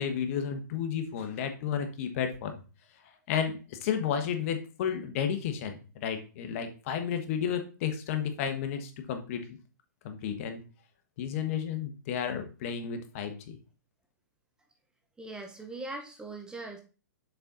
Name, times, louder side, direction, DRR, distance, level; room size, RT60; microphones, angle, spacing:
voice 1, 0.0-2.6 3.3-9.5 10.0-10.6 11.2-13.6, left 8 dB, 45° left, 7 dB, 1.2 m, -32 dB
voice 2, 15.2-16.8, right 2 dB, 10° right, 3 dB, 0.8 m, -40 dB
6.8 x 4.1 x 3.9 m, 0.34 s
hypercardioid pair, 145°, 10 cm